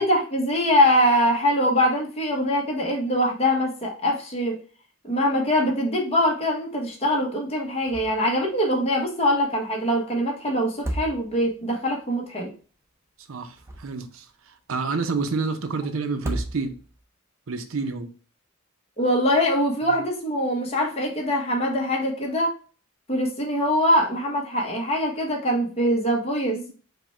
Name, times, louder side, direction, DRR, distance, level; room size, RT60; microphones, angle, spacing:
voice 1, 0.0-4.6 5.0-12.5 19.0-22.5 23.1-26.6, equal, 30° left, 1.1 m, -23 dB
sound 1, 7.9-8.4 8.7-8.8 10.6-11.6 13.3-14.2 16.1-17.0, right 1 dB, 15° right, 0.5 m, -33 dB
voice 2, 13.3-16.8 17.5-18.1 26.5-26.7, right 4 dB, 80° right, 0.6 m, -29 dB
4.9 x 2.3 x 4.4 m
head